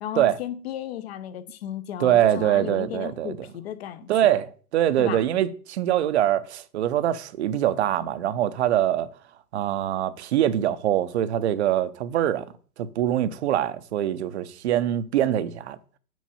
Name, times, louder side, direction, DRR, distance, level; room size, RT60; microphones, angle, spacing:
voice 1, 0.0-4.4 5.0-5.2, left 11 dB, 40° left, 0.8 m, -34 dB
voice 2, 2.0-3.5 4.1-9.1 9.5-12.5 12.8-15.8, right 11 dB, 45° right, 0.7 m, -23 dB
6.2 x 5.4 x 7.0 m
hypercardioid pair, 140°, 49 cm